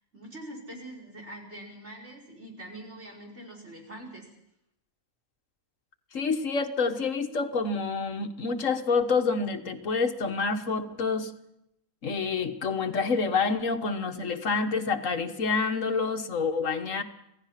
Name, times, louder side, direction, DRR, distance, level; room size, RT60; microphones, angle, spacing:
voice 1, 0.1-4.3, right 1 dB, 55° right, 0 dB, 5.9 m, -44 dB
voice 2, 6.1-11.3 12.0-17.0, left 4 dB, 65° left, 7 dB, 1.7 m, -28 dB
27.5 x 16.5 x 5.8 m, 0.79 s
omnidirectional pair, 1.4 m